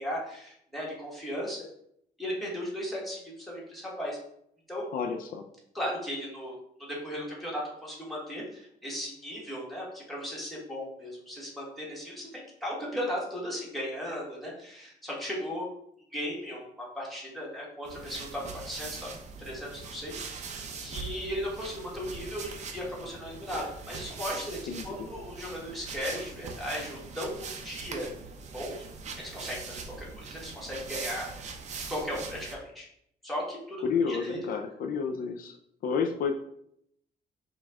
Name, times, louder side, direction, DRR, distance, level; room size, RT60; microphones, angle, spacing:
voice 1, 0.0-1.6 2.2-4.2 4.7-4.9 5.7-6.6 6.9-15.7 16.1-19.1 19.4-24.6 24.8-28.1 28.5-28.8 29.2-31.3 31.8-32.9 33.2-34.4, equal, ahead, -5 dB, 1.3 m, -36 dB
voice 2, 4.9-5.4 24.7-25.1 33.8-35.6 35.8-36.3, left 6 dB, 60° left, 5 dB, 0.4 m, -30 dB
sound 1, 17.9-32.6, right 5 dB, 45° right, 0.6 m, -41 dB
5.2 x 2.3 x 3.5 m, 0.73 s
cardioid pair, 145°, 16 cm